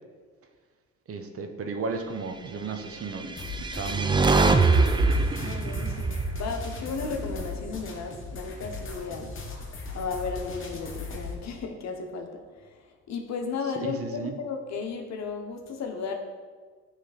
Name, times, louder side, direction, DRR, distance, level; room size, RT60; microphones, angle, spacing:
voice 1, 1.1-4.7 13.8-14.4, right 4 dB, 50° right, 6 dB, 0.8 m, -35 dB
sound 1, 3.1-7.5, right 3 dB, 15° right, 0.4 m, -24 dB
sound 2, 3.4-11.3, left 3 dB, 40° left, 1.2 m, -38 dB
voice 2, 5.4-9.3 9.9-16.1, left 5 dB, 60° left, 4 dB, 1.0 m, -34 dB
9.3 x 3.3 x 4.1 m, 1.5 s
cardioid pair, 90°, 30 cm